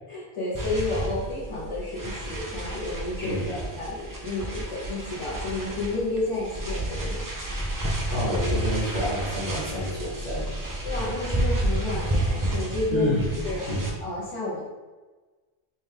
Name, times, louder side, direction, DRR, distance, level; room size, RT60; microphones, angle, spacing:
voice 1, 0.1-3.3 3.8-7.3 10.8-13.1 13.4-13.6 14.0-14.7, left 2 dB, 30° left, -8 dB, 0.9 m, -31 dB
sound 1, 0.5-13.9, right 1 dB, 35° right, 0.3 m, -30 dB
voice 2, 3.2-3.7 8.1-10.6 12.9-13.4 13.7-13.9, equal, 50° left, -7 dB, 1.5 m, -28 dB
3.3 x 3.1 x 3.5 m, 1.2 s
omnidirectional pair, 1.1 m